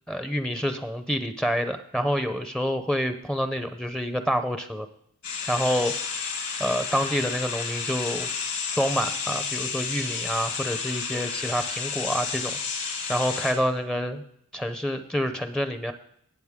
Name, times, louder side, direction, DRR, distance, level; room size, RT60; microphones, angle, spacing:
voice 1, 0.1-4.9 5.5-5.9 6.6-8.3 8.7-12.6 13.1-14.2 14.5-15.9, equal, 5° left, 7 dB, 0.6 m, -27 dB
sound 1, 5.2-13.5, left 5 dB, 60° left, 3.0 m, -31 dB
19.0 x 7.8 x 3.6 m, 0.70 s
head